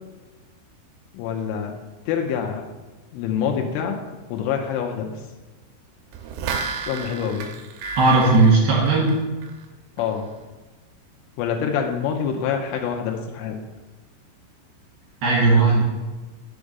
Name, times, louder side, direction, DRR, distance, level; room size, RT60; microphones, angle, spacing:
voice 1, 1.1-1.8 2.1-2.6 3.1-4.0 4.3-5.1 6.8-7.5 10.0-10.3 11.4-13.6, left 7 dB, 80° left, 2 dB, 3.1 m, -26 dB
sound 1, 6.1-9.7 10.0-10.1, right 5 dB, 80° right, 2.9 m, -32 dB
voice 2, 8.0-9.1 15.2-15.8, right 3 dB, 55° right, -5 dB, 3.3 m, -16 dB
7.2 x 5.0 x 6.7 m, 1.2 s
omnidirectional pair, 5.9 m